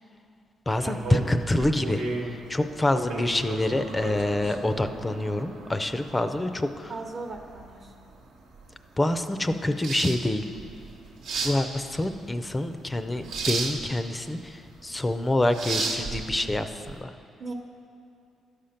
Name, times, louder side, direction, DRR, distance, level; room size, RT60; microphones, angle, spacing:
voice 1, 0.7-2.0 2.5-6.9 9.0-10.4 11.4-17.1, left 1 dB, 15° left, 9 dB, 0.4 m, -26 dB
sound 1, 0.8-17.0, right 3 dB, 85° right, 1.1 m, -35 dB
voice 2, 6.9-7.9 17.4-17.5, right 3 dB, 50° right, 1 dB, 0.8 m, -37 dB
12.0 x 5.1 x 5.7 m, 2.5 s
cardioid pair, 90°, 0 cm